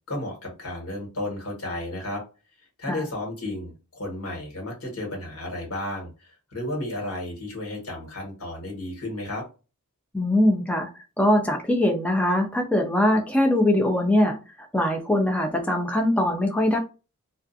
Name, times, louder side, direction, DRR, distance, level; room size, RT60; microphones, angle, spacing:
voice 1, 0.1-2.2 2.8-9.4, left 1 dB, 70° left, 0 dB, 1.4 m, -33 dB
voice 2, 10.1-10.9 11.2-14.4 14.7-16.8, left 1 dB, 5° left, 2 dB, 0.4 m, -22 dB
2.4 x 2.3 x 2.5 m, 0.31 s
head